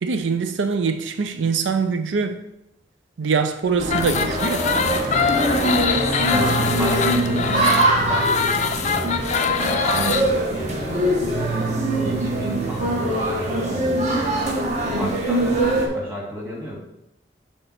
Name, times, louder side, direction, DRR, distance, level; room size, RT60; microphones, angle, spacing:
voice 1, 0.0-2.4 3.2-4.7, right 5 dB, 90° right, 0.5 m, -23 dB
sound 1, 3.8-10.2, left 6 dB, 40° left, 0.4 m, -23 dB
sound 2, 3.8-15.9, right 1 dB, 40° right, 1.2 m, -22 dB
voice 2, 6.3-8.3 8.8-9.1 9.8-11.6 12.0-16.8, equal, 15° right, 2.2 m, -33 dB
6.6 x 3.4 x 5.8 m
head